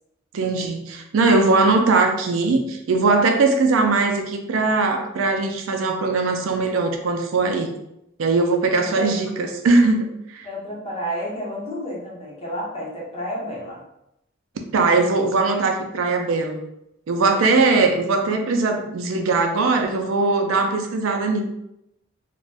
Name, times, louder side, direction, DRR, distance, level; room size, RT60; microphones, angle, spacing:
voice 1, 0.3-7.7 8.2-10.5 14.7-16.6 17.1-21.4, right 3 dB, 75° right, 4 dB, 0.4 m, -20 dB
voice 2, 8.7-9.1 10.4-13.8 17.3-17.4, equal, 30° left, -4 dB, 0.8 m, -31 dB
2.5 x 2.2 x 3.3 m, 0.82 s
head